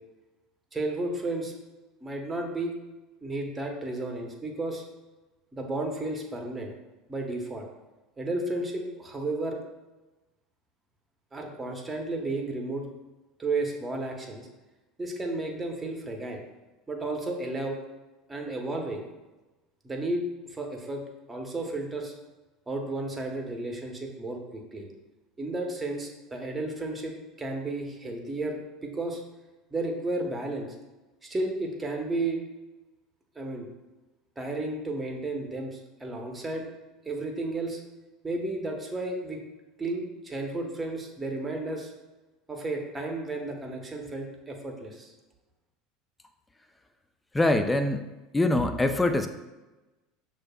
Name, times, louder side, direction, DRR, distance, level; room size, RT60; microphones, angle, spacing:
voice 1, 0.7-1.5 2.0-2.8 3.2-4.8 5.5-6.7 7.1-7.7 8.2-9.6 11.3-12.9 13.4-14.5 15.0-16.4 16.9-17.8 18.3-19.0 19.8-21.0 21.3-22.1 22.7-24.9 25.4-29.2 29.7-30.7 31.2-32.4 33.3-33.7 34.4-36.7 37.0-37.8 38.2-39.4 39.8-41.9 42.5-45.1, right 2 dB, 20° right, 2 dB, 0.9 m, -33 dB
voice 2, 47.3-48.1 48.3-49.3, left 2 dB, 10° left, 8 dB, 0.4 m, -23 dB
6.2 x 2.5 x 2.3 m, 1.1 s
hypercardioid pair, 75°, 0 cm